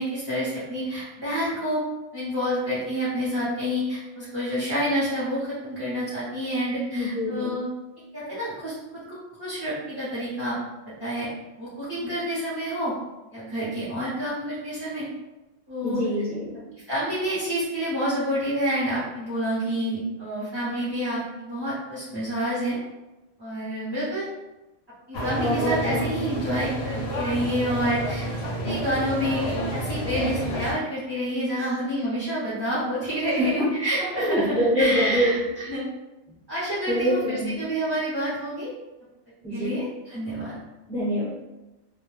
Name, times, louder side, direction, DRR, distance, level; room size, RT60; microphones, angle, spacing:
voice 1, 0.0-1.8 2.1-7.6 8.1-8.7 9.1-10.6 10.9-11.3 11.6-12.9 13.3-15.1 15.7-16.0 16.9-22.8 23.4-24.3 25.1-35.9 36.5-38.7 39.5-40.6, equal, 25° right, -10 dB, 0.6 m, -28 dB
voice 2, 6.9-7.5 15.8-16.6 25.4-26.2 31.6-31.8 33.4-33.7 34.0-35.3 36.9-37.6 39.4-39.8 40.9-41.4, equal, ahead, -10 dB, 1.0 m, -25 dB
sound 1, 25.1-30.7, right 1 dB, 65° left, 0.7 m, -29 dB
2.2 x 2.2 x 3.1 m, 1.0 s
omnidirectional pair, 1.3 m